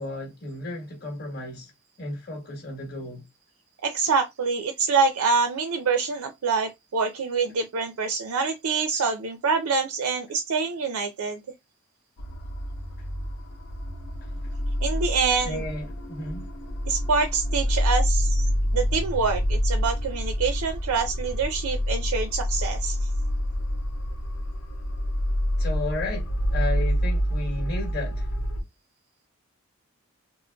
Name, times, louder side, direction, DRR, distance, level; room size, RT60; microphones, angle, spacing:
voice 1, 0.0-1.7 2.0-3.2 14.2-14.5 15.4-16.5 25.6-28.3, left 2 dB, 45° left, 1.2 m, -34 dB
voice 2, 3.8-11.4 14.8-15.6 16.9-18.4 18.7-23.1, right 5 dB, 75° right, 0.4 m, -26 dB
sound 1, 12.2-28.6, equal, 80° left, 0.6 m, -27 dB
3.7 x 2.0 x 2.2 m
head